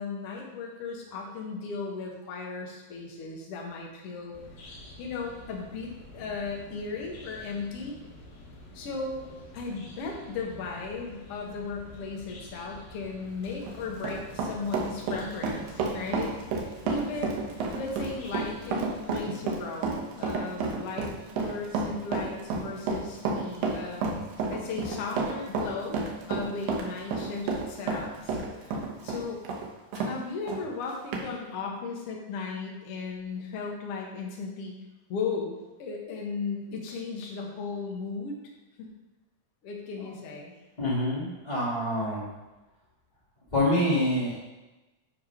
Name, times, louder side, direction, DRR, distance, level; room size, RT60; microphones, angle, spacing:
voice 1, 0.0-4.3 4.6-4.7 5.0-8.0 8.7-16.4 16.6-24.1 24.5-26.0 26.3-29.4 29.9-34.7 35.1-38.4 38.8-38.9 39.6-40.5, left 4 dB, 55° left, -1 dB, 1.8 m, -36 dB
sound 1, 4.3-19.0, left 1 dB, 80° left, 4.2 m, -48 dB
Run, 13.5-30.1 30.5-30.6 31.1-31.3, right 4 dB, 85° right, 2.9 m, -31 dB
voice 2, 40.8-42.3 43.5-44.4, left 1 dB, 30° left, -8 dB, 0.7 m, -26 dB
9.9 x 3.7 x 5.7 m, 1.1 s
omnidirectional pair, 4.0 m